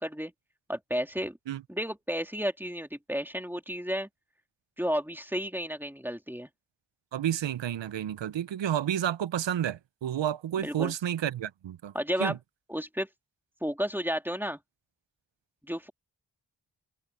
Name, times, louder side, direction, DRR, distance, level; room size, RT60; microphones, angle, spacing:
voice 1, 0.0-0.3 0.7-1.4 1.7-4.1 4.8-6.5 10.6-10.9 11.9-12.4 12.7-13.1 13.6-14.6 15.7-15.9, equal, 5° right, 3.0 m, -32 dB
voice 2, 7.1-11.9 12.2-12.4, right 10 dB, 85° right, 0.6 m, -30 dB
cardioid pair, 50°, 43 cm